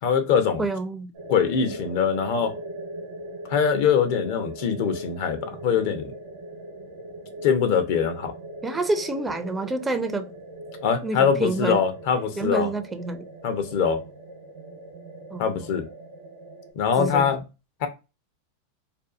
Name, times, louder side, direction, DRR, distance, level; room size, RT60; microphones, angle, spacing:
voice 1, 0.0-0.7 1.3-2.5 3.5-6.1 7.4-8.3 10.8-12.7 13.4-14.0 15.4-15.9 16.7-17.4 17.8-17.9, left 7 dB, 60° left, 0.5 m, -23 dB
voice 2, 0.6-1.1 8.6-10.3 11.0-11.8 12.4-13.2 15.3-15.7 17.0-17.4, right 2 dB, 15° right, 0.4 m, -28 dB
sound 1, 1.1-16.7, right 1 dB, 70° right, 0.8 m, -40 dB
2.6 x 2.3 x 2.3 m
hypercardioid pair, 110°, 0 cm